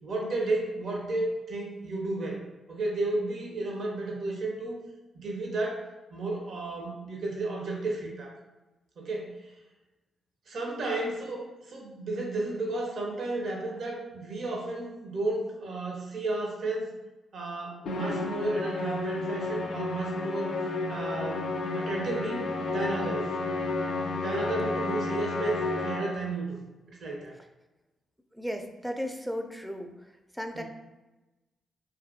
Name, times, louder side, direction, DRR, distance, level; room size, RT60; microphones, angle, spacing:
voice 1, 0.0-2.4 2.7-4.8 5.1-5.9 6.1-8.3 9.0-9.5 10.5-16.9 17.3-20.6 20.9-23.3 24.2-26.6 26.9-27.4 30.5-30.6, right 2 dB, 65° right, -1 dB, 0.7 m, -33 dB
Musical instrument, 17.9-26.4, left 3 dB, 75° left, 0.3 m, -32 dB
voice 2, 28.3-29.9 30.3-30.6, equal, 5° right, 5 dB, 0.4 m, -35 dB
2.6 x 2.5 x 2.5 m, 1.1 s
supercardioid pair, 60°, 0 cm